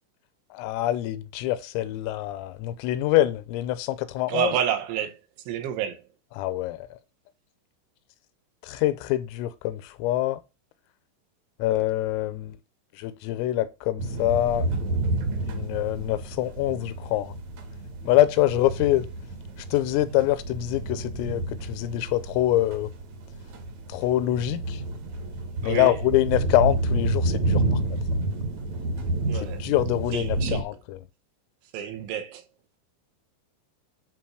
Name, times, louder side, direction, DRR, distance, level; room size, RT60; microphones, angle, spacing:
voice 1, 0.5-4.5 6.4-7.0 8.6-10.4 11.6-12.6 13.0-14.7 15.4-17.3 18.1-19.1 19.7-22.9 23.9-24.8 25.6-28.0 29.4-31.0, left 14 dB, 85° left, 3.4 m, -25 dB
voice 2, 4.3-5.2 5.5-6.1 25.6-26.0 29.3-29.7 30.1-30.7 31.7-32.5, right 9 dB, 75° right, 3.2 m, -29 dB
sound 1, 14.0-30.6, right 2 dB, 55° right, 2.0 m, -30 dB
11.0 x 3.8 x 6.2 m
omnidirectional pair, 5.8 m